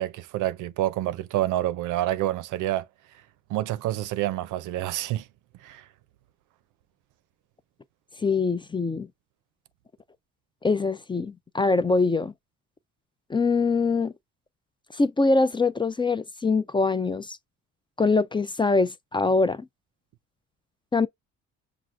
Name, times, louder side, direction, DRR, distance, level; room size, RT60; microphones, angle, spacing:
voice 1, 0.0-2.8 3.5-5.2 5.6-5.8, right 14 dB, 85° right, 0.5 m, -28 dB
voice 2, 8.2-9.1 10.6-12.3 13.3-14.1 14.9-17.4 18.0-19.7 20.9-21.1, left 3 dB, 15° left, 0.3 m, -23 dB
6.0 x 2.5 x 2.4 m
cardioid pair, 90°, 30 cm